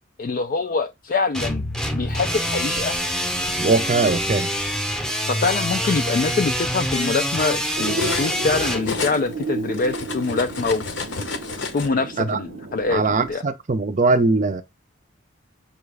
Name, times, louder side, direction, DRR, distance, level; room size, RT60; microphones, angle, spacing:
voice 1, 0.2-1.6 1.9-3.0 5.3-10.8 11.7-13.4, left 4 dB, 45° left, 0.3 m, -24 dB
sound 1, 1.3-8.8, equal, 5° left, 0.7 m, -25 dB
Cutlery silverware, 2.4-3.6 4.6-4.8 5.2-8.5 8.7-11.9, left 4 dB, 65° left, 0.8 m, -33 dB
voice 2, 3.5-4.5 12.2-12.4 12.9-14.6, right 3 dB, 40° right, 0.5 m, -21 dB
sound 2, 7.8-13.3, right 3 dB, 85° right, 0.6 m, -32 dB
5.7 x 2.4 x 3.3 m
head